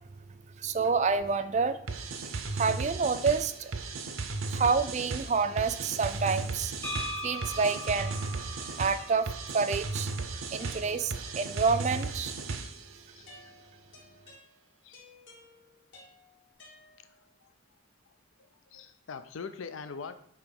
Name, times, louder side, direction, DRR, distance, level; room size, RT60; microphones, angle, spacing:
voice 1, 0.6-1.8 2.5-3.7 4.5-6.7 7.2-8.1 8.8-10.1 10.5-12.3, right 5 dB, 35° right, 11 dB, 0.4 m, -28 dB
sound 1, 1.9-12.9, right 3 dB, 80° right, 0.7 m, -36 dB
sound 2, 6.8-10.6, equal, 10° left, 0.8 m, -40 dB
sound 3, 7.9-9.7 10.6-12.0 13.3-17.4, left 2 dB, 60° left, 2.3 m, -56 dB
voice 2, 10.7-11.0 13.2-13.3 14.8-15.0 16.6-16.8 17.4-17.5 18.7-20.2, left 5 dB, 80° left, 10 dB, 0.5 m, -43 dB
8.1 x 3.0 x 5.3 m, 0.67 s
head